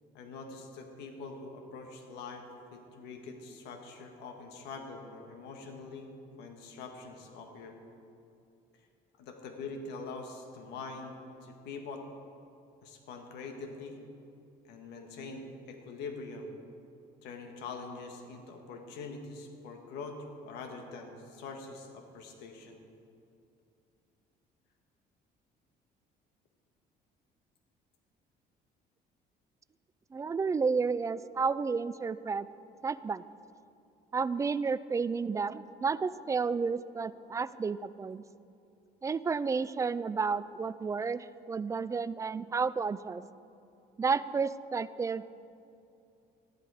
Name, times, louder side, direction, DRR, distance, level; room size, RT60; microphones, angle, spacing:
voice 1, 0.1-2.5 2.7-6.1 6.4-7.8 9.2-12.1 12.8-14.0 14.7-16.6 17.2-20.2 20.4-22.8, left 4 dB, 85° left, 4 dB, 1.7 m, -44 dB
voice 2, 30.1-32.5 32.8-33.2 34.1-38.2 39.0-43.2 44.0-45.2, right 5 dB, 20° right, 16 dB, 0.3 m, -31 dB
13.5 x 11.0 x 4.9 m, 2.6 s
cardioid pair, 110°, 17 cm